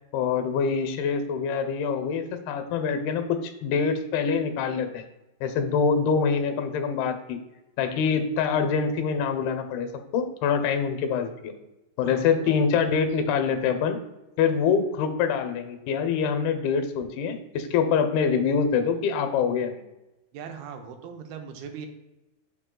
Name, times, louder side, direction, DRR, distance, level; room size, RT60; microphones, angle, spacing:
voice 1, 0.1-5.0 5.4-7.4 7.8-11.5 12.0-14.0 14.4-19.8, left 6 dB, 85° left, 8 dB, 2.7 m, -25 dB
voice 2, 12.0-12.7 20.3-21.9, right 7 dB, 80° right, 5 dB, 2.5 m, -39 dB
6.0 x 5.6 x 3.7 m, 0.98 s
omnidirectional pair, 4.4 m